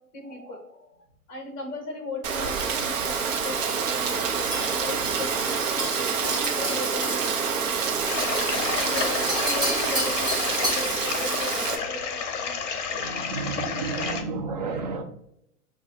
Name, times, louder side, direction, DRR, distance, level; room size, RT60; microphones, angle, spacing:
voice 1, 0.1-1.0 1.3-7.5 8.6-13.1 14.0-14.6, left 2 dB, 20° left, 1 dB, 1.1 m, -37 dB
Rain, 2.2-11.7, right 6 dB, 55° right, 0.7 m, -27 dB
sound 1, 4.5-10.9, equal, 10° right, 1.1 m, -33 dB
sound 2, 8.1-14.2, left 6 dB, 50° left, 0.7 m, -31 dB
voice 2, 12.9-15.0, right 4 dB, 30° right, 4 dB, 0.4 m, -32 dB
6.0 x 2.3 x 2.6 m, 0.76 s
figure-of-eight pair, 115°, 46 cm